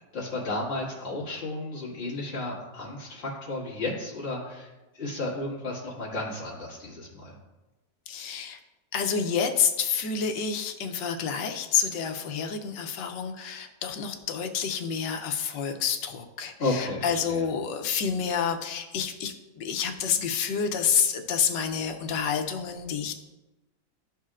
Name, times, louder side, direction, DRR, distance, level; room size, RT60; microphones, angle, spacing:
voice 1, 0.1-7.4 16.6-17.5, left 2 dB, 35° left, -6 dB, 1.9 m, -33 dB
voice 2, 8.1-8.6 8.9-23.2, left 7 dB, 75° left, 5 dB, 1.3 m, -28 dB
12.5 x 4.3 x 2.4 m, 1.1 s
omnidirectional pair, 2.0 m